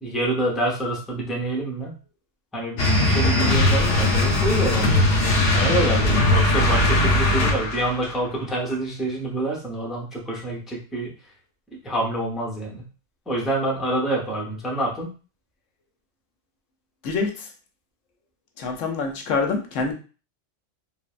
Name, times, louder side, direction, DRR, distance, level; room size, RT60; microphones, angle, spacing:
voice 1, 0.0-1.9 2.5-5.0 5.5-11.1 11.8-12.8 13.3-15.1, right 1 dB, ahead, -3 dB, 0.5 m, -27 dB
sound 1, 2.8-7.9, left 2 dB, 60° left, 0.8 m, -19 dB
voice 2, 17.0-17.5 18.6-19.9, left 4 dB, 90° left, 2 dB, 1.0 m, -26 dB
3.2 x 2.1 x 2.4 m, 0.36 s
omnidirectional pair, 1.3 m